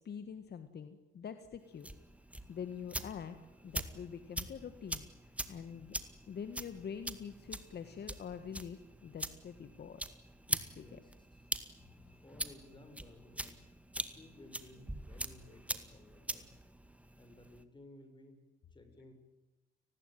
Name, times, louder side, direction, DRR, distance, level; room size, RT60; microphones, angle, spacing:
voice 1, 0.1-1.9 2.5-3.4 3.6-5.1 5.5-6.0 6.3-10.0 10.5-11.0, left 7 dB, 55° left, 9 dB, 1.9 m, -45 dB
sound 1, 1.7-17.6, right 1 dB, 5° right, 2.0 m, -43 dB
voice 2, 10.8-11.5 12.2-13.6 13.9-16.5 17.2-18.4 18.7-19.1, left 1 dB, 25° left, 7 dB, 7.0 m, -57 dB
29.5 x 20.0 x 9.3 m, 1.1 s
cardioid pair, 90°, 20 cm